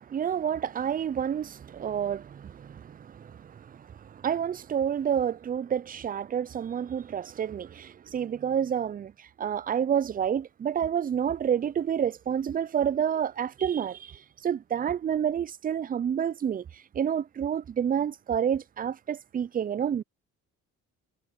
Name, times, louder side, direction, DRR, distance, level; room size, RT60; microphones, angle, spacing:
voice 1, 0.0-16.6 16.9-20.0, right 8 dB, 30° right, 0.4 m, -29 dB
cardioid pair, 90°, 30 cm